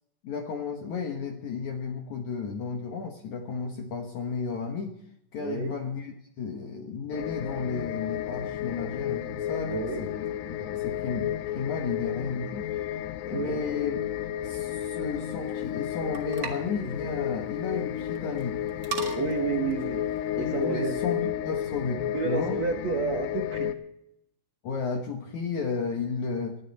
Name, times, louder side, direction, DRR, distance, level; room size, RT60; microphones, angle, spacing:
voice 1, 0.2-5.0 5.3-13.0 13.3-14.0 14.4-18.6 20.4-22.6 24.6-26.6, left 5 dB, 60° left, 3 dB, 2.1 m, -33 dB
voice 2, 5.4-5.8 9.7-10.0 13.3-13.6 19.2-20.0 20.4-21.0 21.2-21.3 22.1-23.8, right 5 dB, 65° right, 3 dB, 1.7 m, -30 dB
sound 1, 7.1-23.7, left 11 dB, 85° left, 3.0 m, -32 dB
sound 2, 14.4-20.8, right 4 dB, 40° right, 1.3 m, -42 dB
20.5 x 14.0 x 4.2 m, 0.80 s
omnidirectional pair, 4.8 m